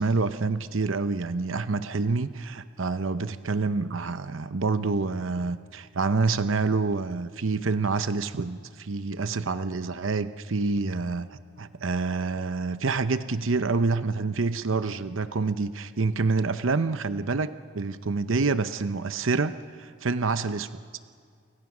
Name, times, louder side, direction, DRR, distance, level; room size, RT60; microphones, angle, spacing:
voice 1, 0.0-19.5 19.8-20.8, right 3 dB, 75° right, 12 dB, 0.8 m, -27 dB
29.5 x 25.0 x 6.2 m, 2.1 s
head